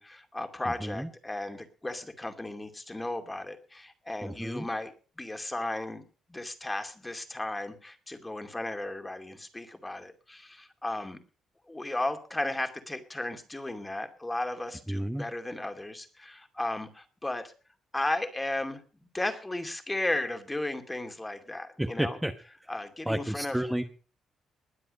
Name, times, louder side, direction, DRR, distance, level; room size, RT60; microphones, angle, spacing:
voice 1, 0.0-6.0 6.3-11.2 11.7-17.5 17.9-18.8 19.1-22.2 22.7-23.6, left 2 dB, 15° left, 7 dB, 2.5 m, -35 dB
voice 2, 0.6-1.1 4.2-4.6 14.9-15.3 21.8-22.3 22.6-22.7 23.1-23.8, right 1 dB, 5° right, 6 dB, 1.2 m, -31 dB
21.0 x 7.7 x 5.4 m, 0.37 s
cardioid pair, 90°, 0 cm